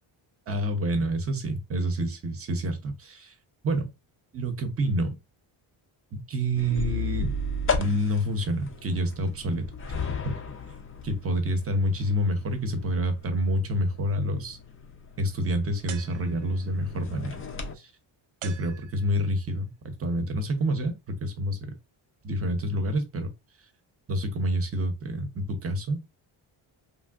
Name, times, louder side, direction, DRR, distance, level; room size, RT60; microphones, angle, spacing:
voice 1, 0.5-3.3 3.6-3.9 4.3-5.1 6.1-7.4 7.8-9.6 10.2-10.4 11.0-14.6 15.2-17.4 17.8-17.9 18.4-19.7 20.0-21.6 22.2-23.3 24.1-26.0, equal, 30° right, 0.6 m, -28 dB
sound 1, 6.6-17.7, left 3 dB, 30° left, 0.3 m, -35 dB
sound 2, 15.9-16.7 18.4-19.4, right 10 dB, 70° right, 0.5 m, -44 dB
3.3 x 2.5 x 2.3 m
wide cardioid pair, 155°, 49 cm